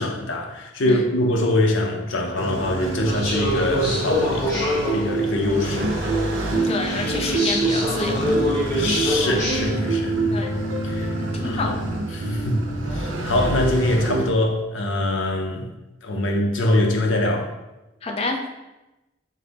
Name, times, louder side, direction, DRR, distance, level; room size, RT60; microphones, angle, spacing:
voice 1, 0.0-6.0 6.6-6.7 8.8-10.4 10.8-11.8 12.1-12.6 12.9-15.7 16.0-17.5, left 1 dB, 80° left, 1 dB, 0.6 m, -24 dB
sound 1, 2.4-14.3, right 2 dB, 85° right, 0.7 m, -26 dB
sound 2, 3.0-9.7, left 1 dB, 15° left, 1.1 m, -26 dB
voice 2, 6.6-8.5 10.2-10.6 11.3-11.7 18.0-18.4, left 3 dB, 30° left, 2 dB, 0.4 m, -28 dB
5.2 x 2.0 x 4.0 m, 1.0 s
head